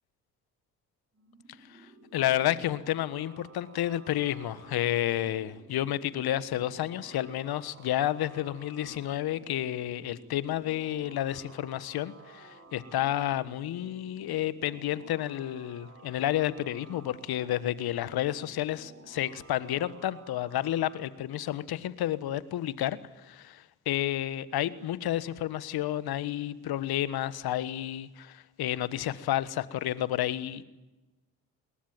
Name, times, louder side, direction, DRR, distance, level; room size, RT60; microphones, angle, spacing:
sound 1, 1.1-21.1, right 3 dB, 35° right, 6.5 m, -54 dB
voice 1, 1.7-30.6, left 13 dB, 65° left, 1.4 m, -31 dB
28.0 x 21.5 x 9.1 m
hypercardioid pair, 40°, 40 cm